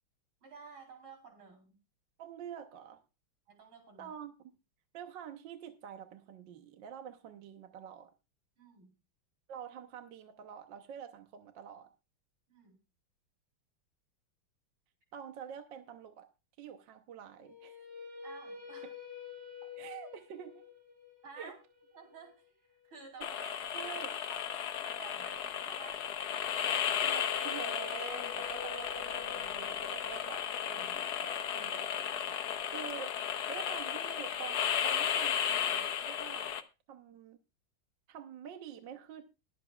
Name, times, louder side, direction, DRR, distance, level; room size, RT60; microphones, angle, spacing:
voice 1, 0.4-1.8 3.5-4.1 8.6-8.9 12.5-12.8 18.2-18.9 19.6-19.7 21.2-21.6 21.9-23.4 24.3-24.4 24.8-26.1, right 4 dB, 85° right, 3 dB, 4.5 m, -52 dB
voice 2, 2.2-3.0 4.0-4.3 4.9-8.1 9.5-11.9 15.1-16.3 16.6-17.8 19.8-20.7 21.4-21.6 23.2-24.1 27.0-32.5 32.7-33.2 33.5-36.6 36.9-37.4 38.1-39.2, right 8 dB, 65° right, 7 dB, 1.6 m, -47 dB
sound 1, 17.4-23.5 26.7-32.8, left 5 dB, 30° right, 4.8 m, -49 dB
sound 2, 23.2-36.6, left 9 dB, 60° left, 1.2 m, -34 dB
21.5 x 8.0 x 2.3 m, 0.28 s
omnidirectional pair, 2.2 m